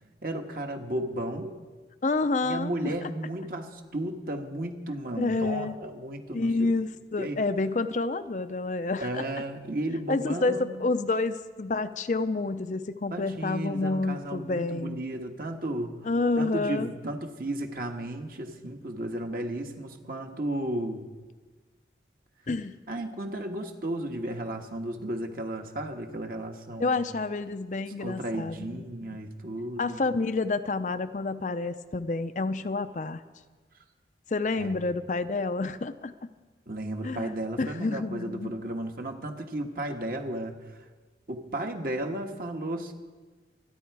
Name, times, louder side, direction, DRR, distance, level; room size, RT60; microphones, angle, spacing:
voice 1, 0.2-1.5 2.4-6.7 7.2-7.4 9.0-10.9 13.1-16.1 16.4-21.1 22.9-27.0 28.0-30.0 34.6-34.7 36.7-40.5 41.3-42.9, right 1 dB, 50° right, 3 dB, 1.4 m, -34 dB
voice 2, 2.0-2.9 5.2-5.8 6.3-9.2 10.1-15.0 16.0-16.9 22.5-22.8 26.8-28.8 29.8-33.2 34.3-36.3 37.0-38.5, left 3 dB, 45° left, 10 dB, 0.5 m, -29 dB
25.5 x 10.0 x 4.7 m, 1.4 s
head